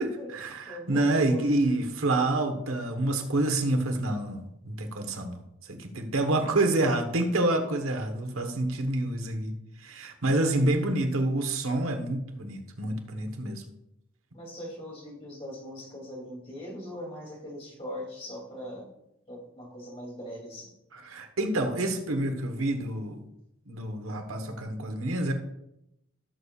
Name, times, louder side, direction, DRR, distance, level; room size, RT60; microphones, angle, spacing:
voice 1, 0.0-5.4 5.7-9.5 9.8-13.6 20.9-23.2 23.7-25.3, right 2 dB, 90° right, 5 dB, 1.2 m, -28 dB
voice 2, 0.7-1.9 7.8-7.9 10.4-11.0 14.3-18.9 19.3-20.7, left 1 dB, 30° left, -2 dB, 2.8 m, -41 dB
15.5 x 7.0 x 2.5 m, 0.83 s
head